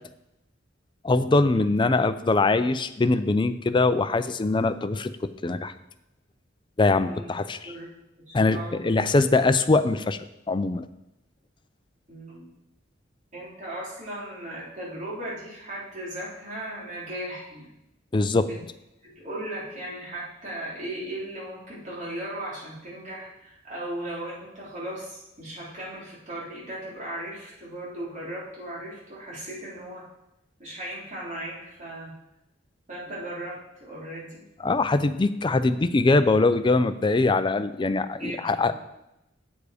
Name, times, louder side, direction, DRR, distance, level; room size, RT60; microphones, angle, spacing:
voice 1, 1.0-5.1 5.4-5.7 6.8-7.7 8.3-10.2 10.5-10.9 18.1-18.5 34.6-38.7, left 3 dB, 25° left, 12 dB, 0.4 m, -22 dB
voice 2, 8.3-8.9 12.1-12.5 13.3-17.7 18.5-18.6 19.0-30.0 30.6-32.1 32.9-34.4 38.2-38.7, right 1 dB, 40° right, -6 dB, 3.5 m, -37 dB
8.1 x 7.2 x 4.9 m, 0.89 s
head